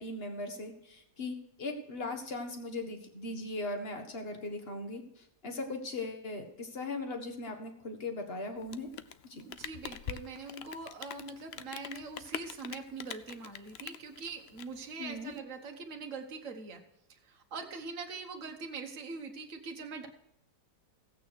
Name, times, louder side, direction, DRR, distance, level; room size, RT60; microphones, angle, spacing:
voice 1, 0.0-8.9 9.3-9.4 15.0-15.3, left 2 dB, 35° left, 5 dB, 1.8 m, -39 dB
Rain, 8.6-15.4, left 9 dB, 65° left, 0.6 m, -44 dB
voice 2, 9.4-16.8 17.1-20.1, right 4 dB, 50° right, 3 dB, 1.7 m, -43 dB
16.0 x 8.7 x 4.7 m, 0.81 s
omnidirectional pair, 1.7 m